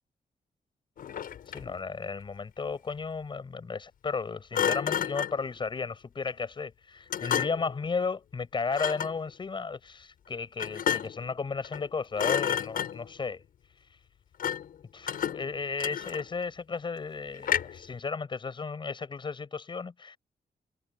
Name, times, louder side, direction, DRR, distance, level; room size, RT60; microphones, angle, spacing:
Thump thud, 1.0-1.8 4.5-5.4 7.1-7.8 8.7-9.2 10.6-11.3 11.6-11.9 12.2-13.2 14.4-14.8 15.1-16.4 17.4-17.9, left 9 dB, 75° left, 6.4 m, -31 dB
voice 1, 1.5-13.4 14.9-20.2, left 5 dB, 35° left, 6.4 m, -34 dB
wide cardioid pair, 150°, 15 cm